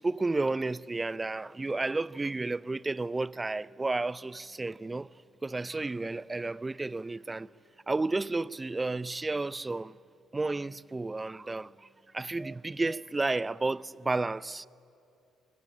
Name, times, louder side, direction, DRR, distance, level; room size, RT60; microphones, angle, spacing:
voice 1, 0.0-7.5 7.9-10.0 10.3-11.9 12.1-14.7, right 3 dB, 20° right, 0.5 m, -32 dB
23.0 x 21.5 x 9.9 m
hypercardioid pair, 55°, 0 cm